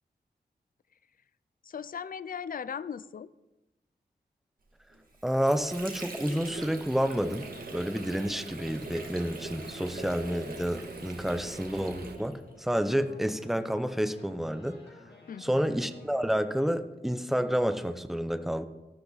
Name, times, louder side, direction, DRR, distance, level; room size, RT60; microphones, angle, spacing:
voice 1, 1.6-3.3 15.3-15.8, left 7 dB, 55° left, 17 dB, 0.4 m, -38 dB
Water / Sink (filling or washing), 4.9-12.6, right 2 dB, 55° right, 2.0 m, -43 dB
voice 2, 5.2-14.8 15.4-18.7, equal, ahead, 10 dB, 0.6 m, -29 dB
sound 1, 6.5-12.2, right 5 dB, 70° right, 0.9 m, -48 dB
sound 2, 7.3-16.7, left 2 dB, 75° left, 2.4 m, -54 dB
13.5 x 12.0 x 4.0 m, 1.0 s
wide cardioid pair, 135°, 17 cm